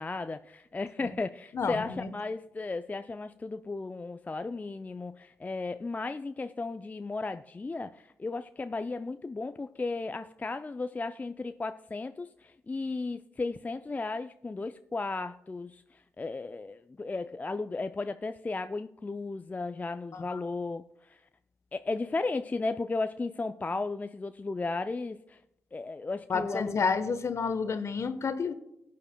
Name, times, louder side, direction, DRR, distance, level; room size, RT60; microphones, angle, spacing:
voice 1, 0.0-21.2 21.7-25.4 25.7-26.8, left 3 dB, 25° left, 10 dB, 0.4 m, -35 dB
voice 2, 1.5-2.1 20.1-20.2 26.3-28.5, left 5 dB, 50° left, 10 dB, 1.0 m, -30 dB
19.0 x 8.5 x 2.2 m, 0.84 s
hypercardioid pair, 40°, 6 cm